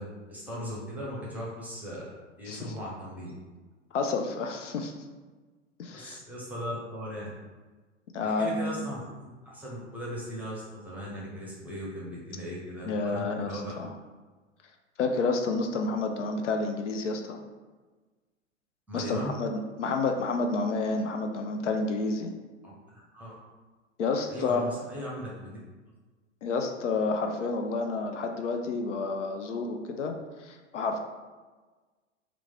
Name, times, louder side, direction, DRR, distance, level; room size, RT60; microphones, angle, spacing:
voice 1, 0.0-2.0 2.4-3.3 5.9-7.3 8.2-13.7 18.9-19.3 22.6-23.3 24.3-25.6, equal, 5° right, -5 dB, 0.7 m, -38 dB
voice 2, 3.9-5.0 5.8-6.2 8.1-8.9 12.8-13.9 15.0-17.4 18.9-22.3 24.0-24.6 26.4-31.0, left 3 dB, 70° left, 4 dB, 0.5 m, -30 dB
3.0 x 2.4 x 3.6 m, 1.3 s
figure-of-eight pair, 95°, 37 cm